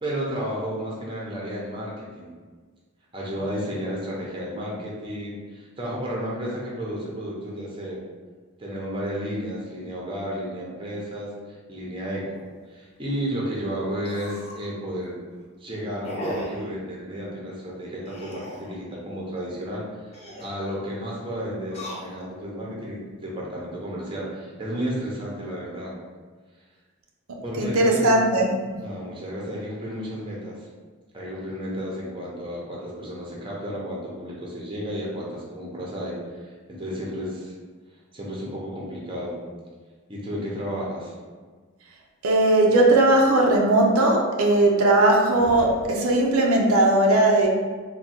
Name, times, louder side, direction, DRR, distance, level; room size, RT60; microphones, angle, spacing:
voice 1, 0.0-2.4 3.1-8.0 8.6-12.4 12.7-15.2 15.6-19.8 20.2-25.9 27.4-28.2 28.8-30.7 31.1-37.5 38.1-39.4 40.1-41.1, equal, 25° right, -4 dB, 0.7 m, -32 dB
sound 1, 12.3-12.5 13.0-13.1 13.3-13.4 14.0-14.7 15.1-15.4 16.0-16.7 18.0-18.8 20.0-20.6 21.6-22.4 23.1-23.6, equal, 30° left, 0.6 m, -36 dB
voice 2, 27.6-28.8 42.2-47.5, right 1 dB, 85° right, 0 dB, 0.6 m, -18 dB
3.6 x 2.3 x 4.2 m, 1.5 s
head